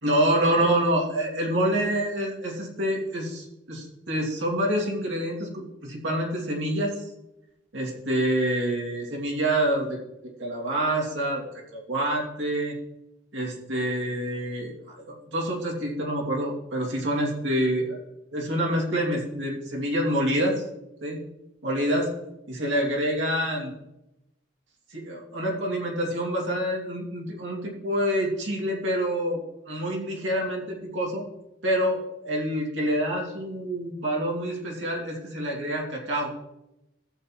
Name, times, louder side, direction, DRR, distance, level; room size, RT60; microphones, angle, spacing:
voice 1, 0.0-7.0 7.7-10.0 10.4-11.5 11.7-12.7 13.3-18.0 18.3-20.6 21.0-21.2 21.6-22.1 22.5-23.7 24.9-29.4 29.7-31.2 31.6-36.3, right 1 dB, 85° right, -2 dB, 2.6 m, -27 dB
14.5 x 7.5 x 3.1 m, 0.89 s
head